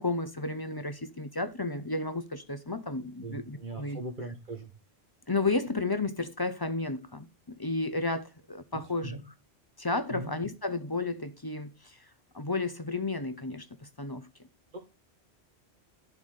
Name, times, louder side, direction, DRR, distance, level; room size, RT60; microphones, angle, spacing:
voice 1, 0.0-4.0 5.3-9.2 9.8-12.0 12.3-14.3, left 3 dB, 25° left, 0.6 m, -32 dB
voice 2, 3.2-4.7 8.7-9.2 10.1-10.3 14.7-14.8, right 2 dB, 50° right, 1.4 m, -40 dB
11.0 x 4.0 x 6.5 m
omnidirectional pair, 1.1 m